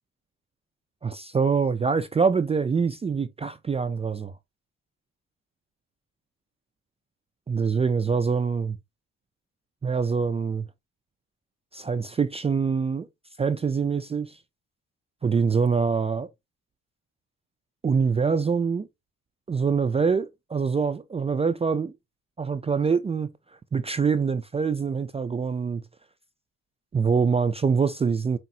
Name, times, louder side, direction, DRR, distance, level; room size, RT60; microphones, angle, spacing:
voice 1, 1.0-4.3 7.5-8.8 9.8-10.7 11.7-13.1 13.4-14.4 15.2-16.3 17.8-18.9 19.5-21.9 22.4-23.3 23.7-25.8 26.9-28.4, right 5 dB, 20° right, 0.3 m, -24 dB
5.4 x 2.5 x 2.8 m
cardioid pair, 90°, 30 cm